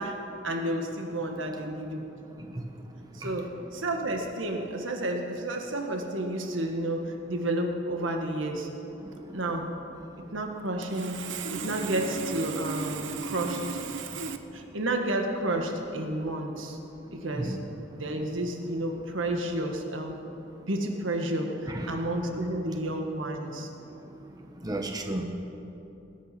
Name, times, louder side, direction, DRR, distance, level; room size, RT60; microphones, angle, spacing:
voice 1, 0.0-2.0 3.1-8.7 9.3-9.7 10.3-11.2 11.5-13.8 14.5-16.8 17.1-17.6 17.9-20.2 20.7-23.7, right 1 dB, 90° right, 3 dB, 1.6 m, -31 dB
Sawing, 10.8-14.4, right 5 dB, 70° right, 0.7 m, -36 dB
voice 2, 24.6-25.2, right 1 dB, 20° right, 3 dB, 1.0 m, -32 dB
19.0 x 9.1 x 6.0 m, 2.8 s
head